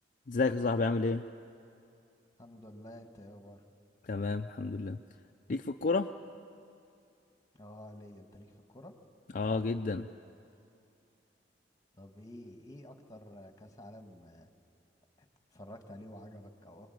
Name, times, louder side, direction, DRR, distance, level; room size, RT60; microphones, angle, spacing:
voice 1, 0.3-1.2 4.1-5.0 5.5-6.1 9.3-10.1, left 3 dB, 45° left, 5 dB, 0.5 m, -30 dB
voice 2, 2.4-3.6 7.6-8.9 12.0-14.5 15.2-16.9, left 1 dB, 20° left, 6 dB, 1.7 m, -50 dB
26.0 x 21.0 x 9.4 m, 2.6 s
head